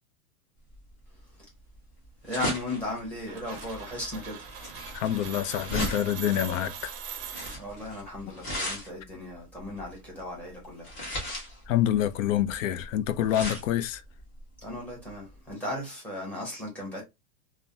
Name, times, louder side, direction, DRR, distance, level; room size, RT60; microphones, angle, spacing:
sound 1, 0.7-15.5, equal, 30° left, 1.3 m, -38 dB
voice 1, 2.2-4.4 7.6-10.9 14.6-17.0, left 1 dB, 5° left, 0.9 m, -36 dB
sound 2, 3.3-8.1, right 9 dB, 40° right, 0.5 m, -42 dB
voice 2, 4.9-6.9 11.7-14.0, left 11 dB, 65° left, 0.5 m, -27 dB
3.3 x 2.1 x 2.6 m
supercardioid pair, 165°, 42 cm